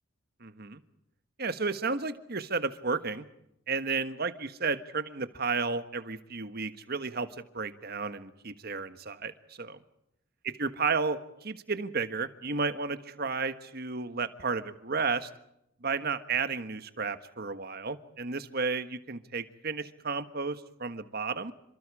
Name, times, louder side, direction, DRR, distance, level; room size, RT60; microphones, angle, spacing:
voice 1, 0.4-0.8 1.4-3.2 3.7-9.8 10.6-15.3 15.8-21.5, right 4 dB, 50° right, 11 dB, 1.5 m, -32 dB
28.5 x 25.5 x 4.9 m, 0.80 s
head